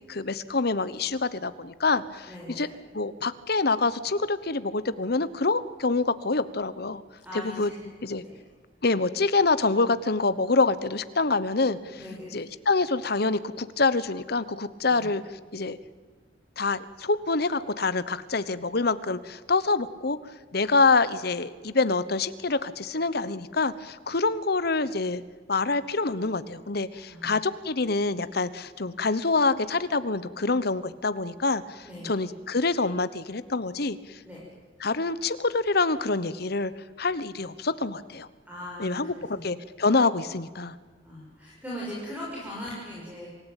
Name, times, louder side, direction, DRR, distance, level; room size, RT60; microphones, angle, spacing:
voice 1, 0.1-2.7 2.9-7.0 7.3-7.7 8.0-8.2 8.8-11.8 12.3-15.2 15.5-15.8 16.6-20.2 20.5-25.2 25.5-34.2 34.8-36.7 37.0-38.3 38.8-40.7, left 3 dB, 55° left, 15 dB, 1.1 m, -26 dB
voice 2, 2.3-2.7 7.2-7.9 8.2-8.4 11.9-12.4 14.9-15.1 26.9-27.4 31.8-32.1 34.2-34.4 38.4-39.4 41.0-43.3, equal, 10° right, -6 dB, 6.7 m, -40 dB
27.0 x 17.0 x 9.1 m, 1.4 s
head